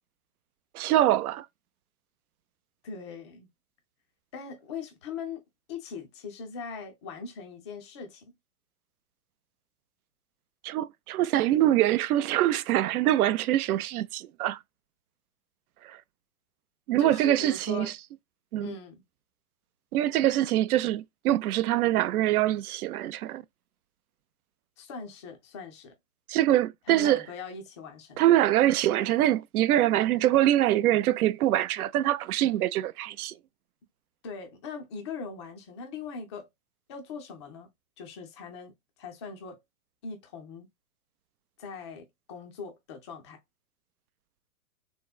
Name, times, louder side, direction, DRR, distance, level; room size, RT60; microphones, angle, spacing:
voice 1, 0.7-1.5 10.6-14.6 15.8-16.0 16.9-17.9 18.5-18.8 19.9-23.4 26.3-27.2 28.2-33.3, right 13 dB, 75° right, 0.5 m, -24 dB
voice 2, 2.8-3.5 4.3-5.4 5.7-8.3 17.0-17.9 18.6-19.0 24.8-25.9 26.9-28.3 34.2-36.5 36.9-37.7 38.0-38.7 39.0-39.6 40.0-40.7 41.6-43.4, left 5 dB, 20° left, 0.3 m, -40 dB
3.6 x 2.0 x 2.3 m
hypercardioid pair, 135°, 45 cm